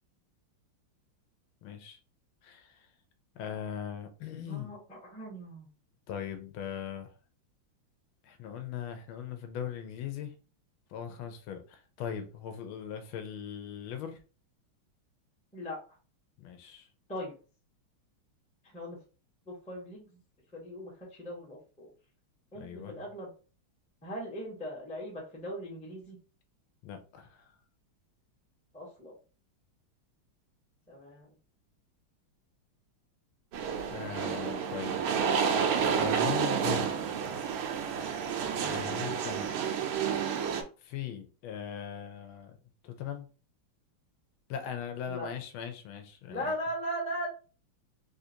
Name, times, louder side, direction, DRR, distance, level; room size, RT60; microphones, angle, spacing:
voice 1, 1.6-2.0 2.4-2.9 3.3-4.7 6.1-7.1 8.2-10.3 10.9-14.2 16.4-16.9 22.5-23.1 26.8-27.5 33.9-35.0 35.8-36.9 38.6-39.5 40.8-42.6 42.8-43.3 44.5-46.5, left 9 dB, 80° left, 1.5 m, -39 dB
voice 2, 4.5-5.7 15.5-15.8 17.1-17.3 18.7-19.0 19.5-20.1 20.5-21.9 22.5-23.3 24.0-26.2 28.7-29.1 30.9-31.3 45.1-45.3 46.3-47.3, equal, 5° left, 0.5 m, -39 dB
sound 1, 33.5-40.6, right 7 dB, 90° right, 1.5 m, -30 dB
3.7 x 2.5 x 2.7 m
omnidirectional pair, 2.3 m